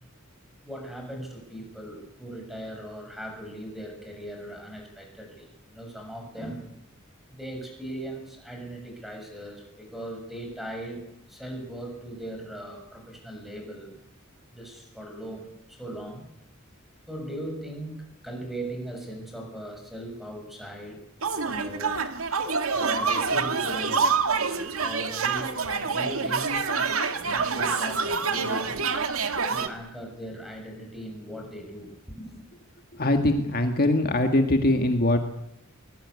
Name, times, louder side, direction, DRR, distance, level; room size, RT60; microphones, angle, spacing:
voice 1, 0.6-6.7 7.3-11.0 11.3-13.9 14.5-16.3 17.1-21.0 21.3-22.0 22.7-24.2 24.8-28.8 29.5-32.4, right 1 dB, ahead, 3 dB, 6.9 m, -39 dB
sound 1, 21.2-29.7, right 5 dB, 75° right, 2.2 m, -26 dB
voice 2, 33.0-35.2, left 1 dB, 45° left, 6 dB, 1.8 m, -22 dB
22.5 x 20.5 x 9.7 m, 0.80 s
head